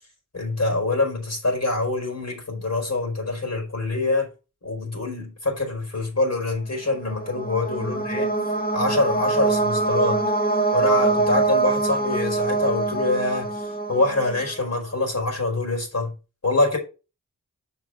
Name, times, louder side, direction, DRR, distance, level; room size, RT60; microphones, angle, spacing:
voice 1, 0.3-4.3 4.6-8.3 8.7-10.2 10.7-16.1 16.4-16.8, left 2 dB, 55° left, 4.3 m, -25 dB
sound 1, 6.9-14.7, right 3 dB, 25° left, 1.7 m, -24 dB
6.5 x 5.0 x 6.0 m
cardioid pair, 55°, 33 cm